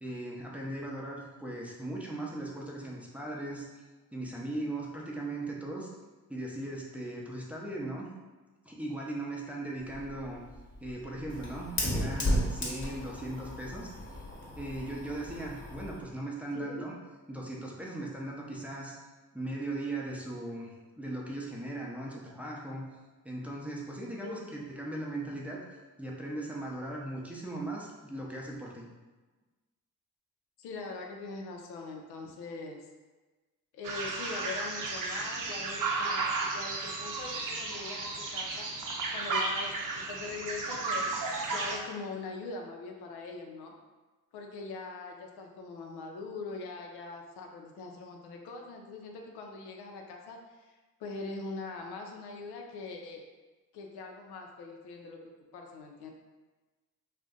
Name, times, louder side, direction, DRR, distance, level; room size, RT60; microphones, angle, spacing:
voice 1, 0.0-3.8 4.1-5.9 6.3-8.1 8.6-10.4 10.8-13.9 14.6-16.9 17.3-18.9 19.3-22.8 23.2-25.6 26.0-28.9, right 1 dB, 5° right, -4 dB, 0.6 m, -38 dB
Fire, 9.8-16.0, equal, 30° left, 0.9 m, -35 dB
voice 2, 16.5-16.8 24.2-24.5 30.6-32.9 33.7-36.3 36.5-39.8 40.1-41.1 41.5-43.7 44.3-53.2 53.7-56.1, left 3 dB, 85° left, 2 dB, 0.5 m, -42 dB
sound 1, 33.8-41.8, right 3 dB, 55° right, 0.6 m, -33 dB
2.5 x 2.1 x 3.6 m, 1.2 s
supercardioid pair, 60°, 38 cm